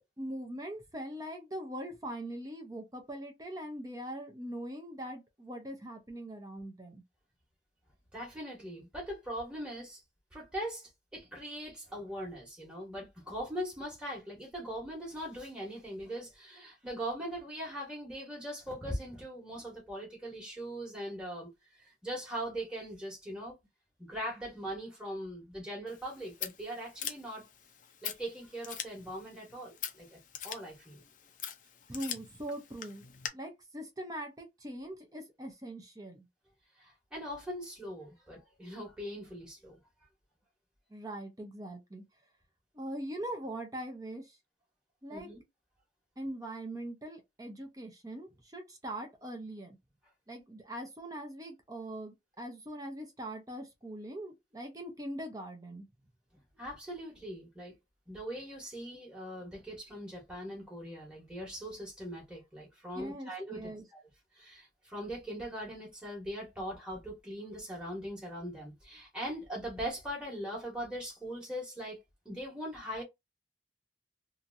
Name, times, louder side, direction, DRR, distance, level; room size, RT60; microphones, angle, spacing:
voice 1, 0.2-7.0 31.9-33.0 33.3-36.3 40.9-42.0 42.7-44.4 45.0-45.3 46.2-49.8 50.3-55.8 62.9-63.8, right 1 dB, 20° right, 0.7 m, -41 dB
voice 2, 8.1-10.0 10.3-23.6 24.0-27.5 28.0-30.2 30.4-31.0 36.8-39.7 45.1-45.4 56.6-57.7 58.1-64.0 64.3-72.0 72.2-73.0, equal, 5° right, 1.2 m, -41 dB
Scissors, 25.9-33.3, left 9 dB, 50° left, 0.5 m, -44 dB
2.9 x 2.6 x 2.6 m
head